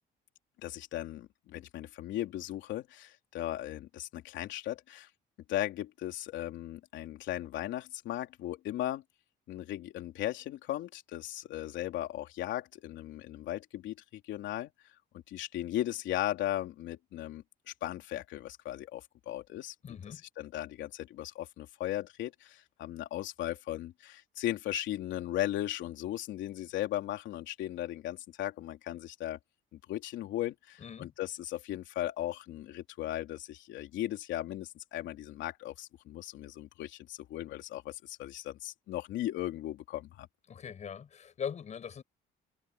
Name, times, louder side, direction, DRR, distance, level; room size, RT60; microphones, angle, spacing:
voice 1, 0.6-5.1 5.5-9.0 9.5-14.7 15.3-29.4 29.7-40.3, left 13 dB, 75° left, 3.3 m, -37 dB
voice 2, 19.8-20.2 30.8-31.1 40.5-42.0, left 7 dB, 35° left, 5.7 m, -41 dB
cardioid pair, 145°, 19 cm